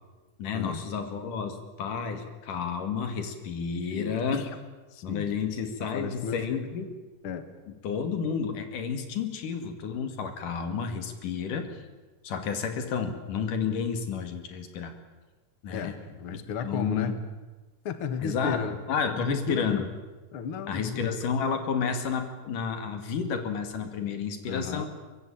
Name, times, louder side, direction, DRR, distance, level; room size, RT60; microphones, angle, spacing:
voice 1, 0.4-4.4 5.0-6.9 7.8-11.7 12.2-14.9 15.6-16.0 16.3-17.1 18.2-18.6 18.9-19.9 20.7-24.9, left 6 dB, 80° left, 7 dB, 3.8 m, -31 dB
voice 2, 3.9-4.5 4.9-5.3 5.8-6.7 7.2-7.5 15.7-17.2 17.8-18.8 19.2-19.9 20.3-21.1 24.5-24.9, left 6 dB, 50° left, 9 dB, 2.2 m, -34 dB
23.5 x 22.0 x 8.7 m, 1.2 s
omnidirectional pair, 3.6 m